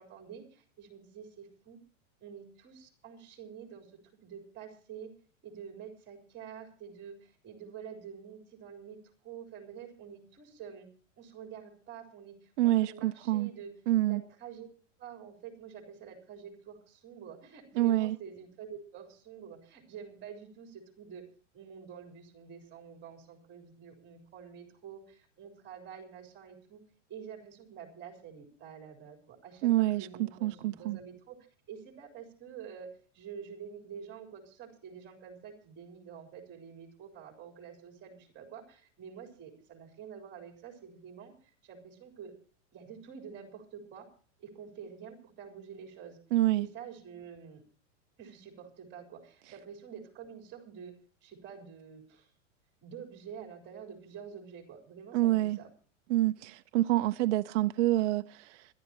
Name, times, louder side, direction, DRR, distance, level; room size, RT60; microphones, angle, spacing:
voice 1, 0.0-1.8 2.2-3.9 4.2-5.1 5.4-9.0 9.2-10.9 11.2-13.7 14.1-14.7 15.0-21.3 21.5-26.8 27.1-31.4 31.7-42.3 42.7-44.1 44.4-46.2 46.6-47.6 48.2-51.0 51.2-52.3 52.8-55.7, right 7 dB, 30° right, 4.0 m, -48 dB
voice 2, 12.6-13.5 13.9-14.2 17.8-18.2 29.6-30.1 30.4-31.0 46.3-46.7 55.1-55.6 56.1-58.7, right 15 dB, 65° right, 0.6 m, -27 dB
26.0 x 11.5 x 2.9 m
hypercardioid pair, 120°, 38 cm